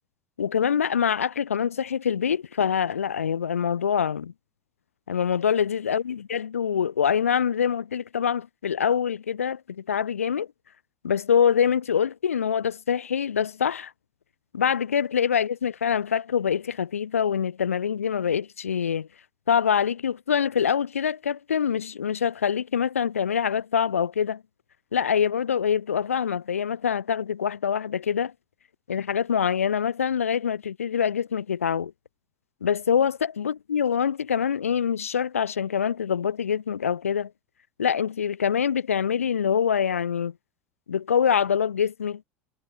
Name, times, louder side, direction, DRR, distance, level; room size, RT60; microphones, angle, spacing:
voice 1, 0.4-4.3 5.1-10.5 11.0-13.9 14.5-19.1 19.5-24.4 24.9-28.3 28.9-31.9 32.6-37.3 37.8-40.3 40.9-42.2, left 7 dB, 85° left, 0.7 m, -25 dB
figure-of-eight pair, 75°, 7 cm